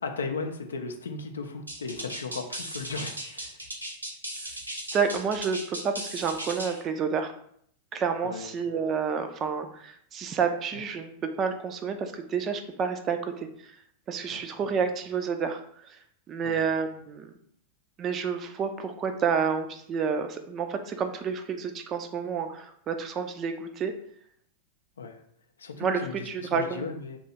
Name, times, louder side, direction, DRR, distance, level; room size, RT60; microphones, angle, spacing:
voice 1, 0.0-3.6 8.2-8.5 14.3-14.5 16.4-16.6 25.0-25.2 25.6-27.2, left 4 dB, 70° left, 5 dB, 0.4 m, -36 dB
sound 1, 1.7-6.8, right 1 dB, 85° right, 0.7 m, -37 dB
voice 2, 4.9-7.3 7.9-11.1 11.4-13.3 13.6-13.7 14.1-15.6 16.3-17.3 18.0-23.9 25.8-26.9, right 6 dB, 30° right, 7 dB, 0.4 m, -29 dB
2.8 x 2.3 x 4.1 m, 0.66 s
figure-of-eight pair, 90°, 0 cm